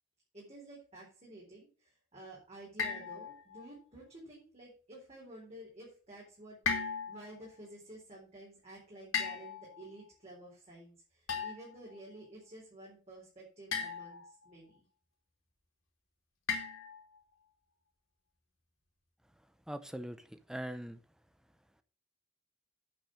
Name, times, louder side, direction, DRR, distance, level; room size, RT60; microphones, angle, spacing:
voice 1, 0.3-14.8, right 1 dB, 30° right, -4 dB, 4.0 m, -52 dB
sound 1, 2.8-3.7 6.7-7.4 9.1-9.9 11.3-11.8 13.7-14.3 16.5-17.2, left 5 dB, 65° left, 3.0 m, -37 dB
voice 2, 19.7-21.0, right 1 dB, 5° right, 11 dB, 0.6 m, -41 dB
8.7 x 6.6 x 6.4 m, 0.38 s
head